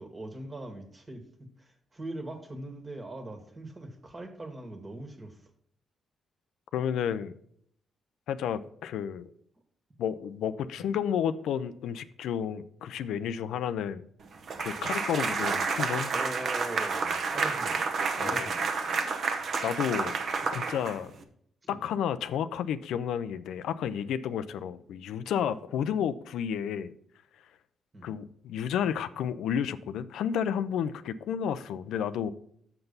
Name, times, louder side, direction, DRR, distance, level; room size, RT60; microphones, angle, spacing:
voice 1, 0.0-5.4 10.7-11.0 16.1-17.8 18.2-18.6 21.6-21.8 25.8-26.0 27.9-28.1, right 2 dB, 25° right, 5 dB, 1.6 m, -41 dB
voice 2, 6.7-7.3 8.3-9.2 10.0-14.0 14.6-16.1 18.2-18.5 19.6-20.1 20.5-21.1 21.7-26.9 28.0-32.3, left 8 dB, 90° left, 13 dB, 0.4 m, -31 dB
sound 1, 14.5-21.2, right 4 dB, 60° right, 0.9 m, -30 dB
6.6 x 6.0 x 5.4 m, 0.66 s
cardioid pair, 95°, 0 cm